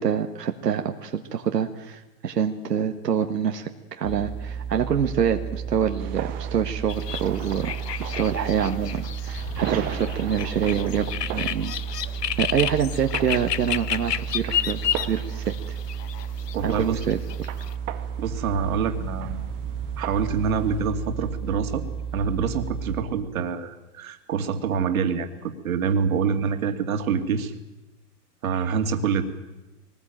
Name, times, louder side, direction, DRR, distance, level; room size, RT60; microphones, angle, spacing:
voice 1, 0.0-7.7 8.0-11.1 11.3-11.7 12.4-15.8 16.6-17.5, right 8 dB, 90° right, 5 dB, 1.8 m, -26 dB
sound 1, 4.0-23.0, right 7 dB, 10° left, 1.2 m, -33 dB
sound 2, 6.0-20.9, right 12 dB, 20° right, 0.9 m, -39 dB
sound 3, 6.9-17.7, left 10 dB, 80° left, 0.9 m, -32 dB
voice 2, 16.5-17.0 18.2-19.4 20.0-21.8 22.1-27.5 28.4-29.2, right 6 dB, 60° right, 6 dB, 2.7 m, -26 dB
23.0 x 19.5 x 9.2 m, 1.1 s
hypercardioid pair, 150°, 47 cm